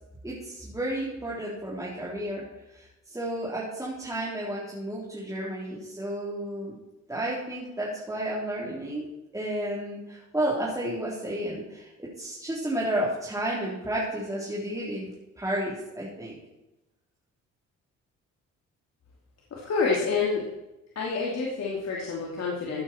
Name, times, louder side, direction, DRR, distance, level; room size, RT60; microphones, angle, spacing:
voice 1, 0.2-2.4 2.7-6.7 7.1-9.0 9.3-15.1 15.4-16.4, right 1 dB, 10° right, -7 dB, 3.8 m, -32 dB
voice 2, 19.5-20.4 20.9-22.8, left 4 dB, 60° left, -3 dB, 3.0 m, -28 dB
15.5 x 9.0 x 4.6 m, 0.96 s
cardioid pair, 90°, 30 cm